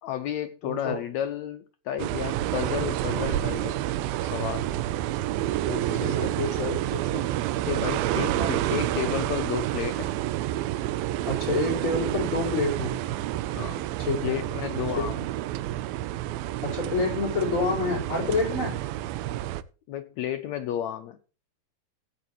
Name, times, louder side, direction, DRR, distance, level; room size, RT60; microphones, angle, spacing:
voice 1, 0.0-3.7 4.2-4.7 5.7-6.3 7.6-10.1 13.5-13.8 14.2-15.2 19.9-21.2, left 10 dB, 90° left, 9 dB, 1.5 m, -32 dB
voice 2, 0.6-1.0 6.0-7.3 8.2-8.6 11.3-13.0 14.1-14.4 15.0-15.2 16.6-18.8, left 3 dB, 35° left, -1 dB, 5.7 m, -28 dB
sound 1, 2.0-19.6, right 14 dB, 90° right, 2.5 m, -29 dB
16.5 x 9.3 x 3.1 m, 0.35 s
omnidirectional pair, 4.1 m